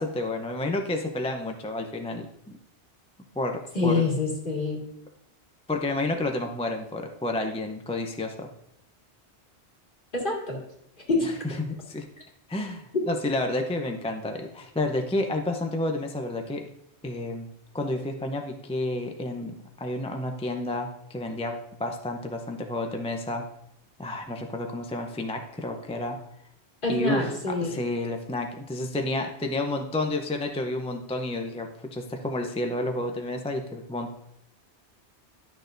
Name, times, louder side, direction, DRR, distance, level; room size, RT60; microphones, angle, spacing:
voice 1, 0.0-2.3 3.3-4.0 5.7-8.5 11.2-12.0 12.5-16.7 17.0-17.5 17.7-23.4 24.0-26.2 26.9-34.1, left 2 dB, 10° left, 4 dB, 0.4 m, -30 dB
voice 2, 3.7-4.8 10.1-10.6 11.1-11.4 26.8-27.7, left 3 dB, 50° left, -3 dB, 2.3 m, -26 dB
11.5 x 6.5 x 2.6 m, 0.75 s
omnidirectional pair, 1.2 m